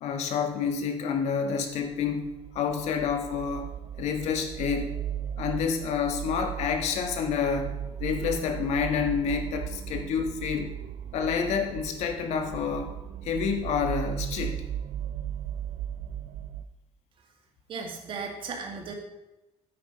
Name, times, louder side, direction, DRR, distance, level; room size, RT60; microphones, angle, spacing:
voice 1, 0.0-3.7 4.0-5.0 5.4-10.7 11.1-13.0 13.2-14.6, left 6 dB, 75° left, 5 dB, 1.6 m, -29 dB
sound 1, 1.9-16.6, right 10 dB, 75° right, 0.6 m, -37 dB
voice 2, 17.7-18.9, right 5 dB, 50° right, 1 dB, 2.2 m, -36 dB
9.4 x 8.6 x 5.2 m, 0.99 s
cardioid pair, 165°, 11 cm